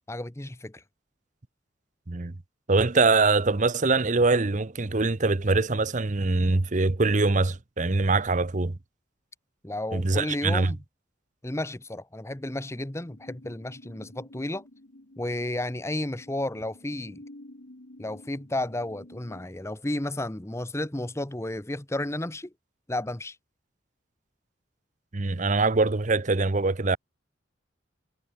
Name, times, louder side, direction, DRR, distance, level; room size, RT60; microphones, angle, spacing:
voice 1, 0.1-0.8 9.6-10.8 11.4-14.7 15.2-17.2 18.0-22.5 22.9-23.4, left 1 dB, 15° left, 0.9 m, -32 dB
voice 2, 2.7-8.8 9.9-10.7 25.1-27.0, right 3 dB, 40° right, 0.8 m, -23 dB
sound 1, 12.5-19.5, left 1 dB, 60° left, 1.9 m, -51 dB
head